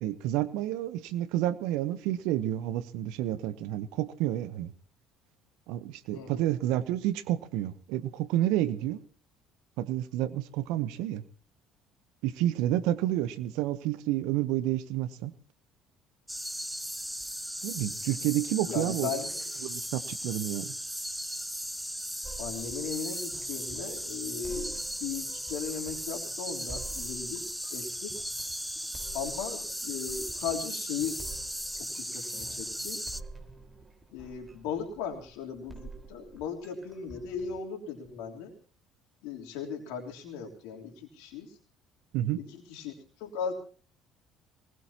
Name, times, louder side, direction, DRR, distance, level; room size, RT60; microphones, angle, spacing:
voice 1, 0.0-4.7 5.7-9.0 9.8-11.2 12.2-15.3 17.6-19.1 19.6-20.7 42.1-42.4, right 13 dB, 70° right, 15 dB, 0.9 m, -30 dB
voice 2, 6.1-6.5 18.7-19.4 22.4-27.4 27.7-28.1 29.1-31.2 31.7-33.0 34.1-38.5 39.2-41.6 42.4-43.5, left 7 dB, 70° left, 2 dB, 3.4 m, -37 dB
sound 1, 16.3-33.2, equal, ahead, 0.7 m, -37 dB
sound 2, 22.2-37.6, right 3 dB, 20° right, 4.4 m, -49 dB
23.5 x 20.0 x 2.9 m, 0.41 s
hypercardioid pair, 55°, 0 cm